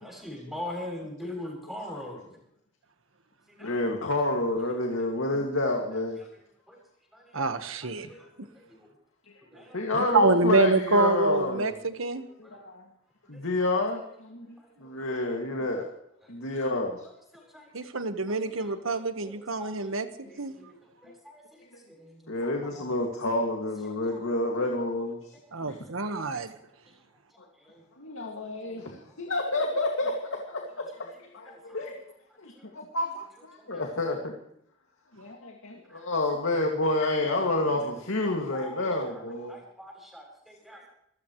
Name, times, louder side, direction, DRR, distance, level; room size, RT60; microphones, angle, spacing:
voice 1, 0.0-2.3 3.5-3.8 6.7-6.8 7.1-8.9 9.5-9.9 12.4-12.6 13.3-13.7 14.8-15.1 15.7-15.8 17.3-17.9 18.3-19.3 19.6-20.0 20.2-22.3 24.1-24.2 26.0-26.1 26.9-27.0 27.6-27.8 28.4-28.7 31.5-31.9 32.5-32.7 33.6-33.9 35.9-36.0 38.2-39.2 39.5-40.9, left 1 dB, ahead, 0 dB, 7.5 m, -44 dB
voice 2, 3.6-6.3 9.3-9.4 9.7-11.7 12.4-12.8 13.3-15.9 16.3-17.0 22.3-25.3 25.6-25.8 28.0-32.0 32.4-34.3 35.1-39.6, left 2 dB, 80° left, 1 dB, 2.3 m, -29 dB
voice 3, 7.3-8.1 10.1-12.3 17.7-20.1 20.4-20.5 25.5-26.5, right 3 dB, 80° right, 9 dB, 1.5 m, -26 dB
26.5 x 15.5 x 3.2 m, 0.74 s
head